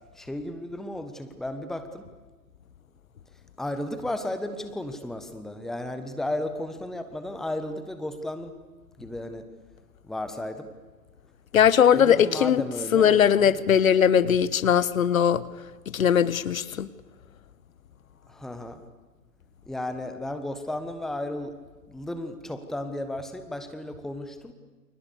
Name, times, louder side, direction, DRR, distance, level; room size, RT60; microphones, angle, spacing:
voice 1, 0.1-2.1 3.6-8.5 9.0-9.5 10.0-10.7 11.9-13.6 18.3-18.8 19.6-21.5 21.9-24.5, left 1 dB, ahead, 1.3 m, -34 dB
voice 2, 11.5-12.6 12.9-15.4 15.9-16.9, left 8 dB, 55° left, 1.4 m, -20 dB
29.5 x 28.5 x 6.9 m
figure-of-eight pair, 125°, 48 cm